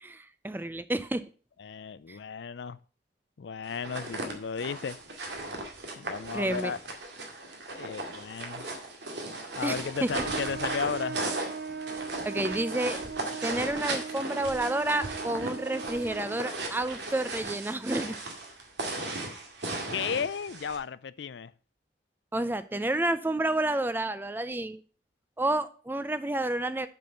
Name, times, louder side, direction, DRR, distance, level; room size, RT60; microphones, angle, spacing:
voice 1, 0.0-1.2 2.1-2.2 6.3-6.7 9.6-9.7 10.0-10.1 12.3-13.0 13.4-18.2 22.3-24.8 25.4-26.9, right 1 dB, 10° right, 0.4 m, -30 dB
voice 2, 1.6-2.8 3.4-5.0 6.0-6.8 7.7-8.7 9.5-11.2 19.9-21.5, left 6 dB, 75° left, 0.4 m, -34 dB
sound 1, 3.7-20.8, right 2 dB, 75° right, 2.1 m, -37 dB
Trumpet, 10.1-16.6, right 5 dB, 60° right, 0.6 m, -39 dB
6.9 x 6.1 x 6.4 m
head